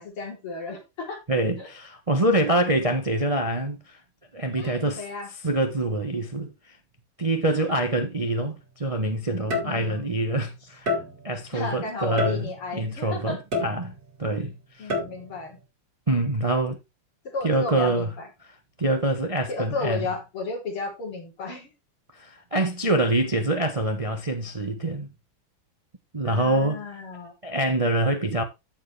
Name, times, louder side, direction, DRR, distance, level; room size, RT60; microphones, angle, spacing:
voice 1, 0.0-1.2 1.6-1.7 4.5-5.3 7.4-7.7 9.6-10.1 11.5-13.4 14.8-15.6 17.2-18.3 19.5-21.7 26.2-27.3, left 3 dB, 80° left, 4.4 m, -33 dB
voice 2, 1.3-4.0 4.3-5.0 5.4-6.5 7.2-10.9 11.2-13.9 14.2-14.9 16.1-16.8 17.4-18.1 18.8-20.1 22.1-25.1 26.1-26.8 27.4-28.4, right 1 dB, 30° right, 0.7 m, -25 dB
sound 1, 8.3-8.5 9.5-10.1 10.9-11.4 12.2-12.8 13.5-14.2 14.9-15.4, left 2 dB, 45° right, 3.1 m, -29 dB
14.5 x 4.9 x 3.3 m
omnidirectional pair, 2.4 m